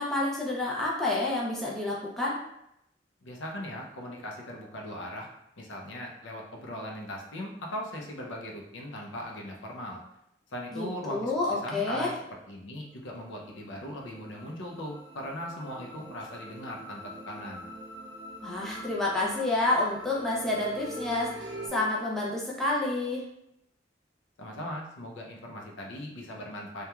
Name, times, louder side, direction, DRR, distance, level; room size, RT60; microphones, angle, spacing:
voice 1, 0.0-2.4 10.7-12.1 18.4-23.3, left 2 dB, ahead, -5 dB, 0.4 m, -29 dB
voice 2, 3.2-5.3 5.6-10.0 10.5-12.2 12.5-17.0 17.3-17.7 24.4-26.8, left 1 dB, 90° left, 0 dB, 0.5 m, -39 dB
sound 1, 12.8-21.7, equal, 75° right, 0.7 m, -44 dB
2.9 x 2.2 x 2.3 m, 0.80 s
head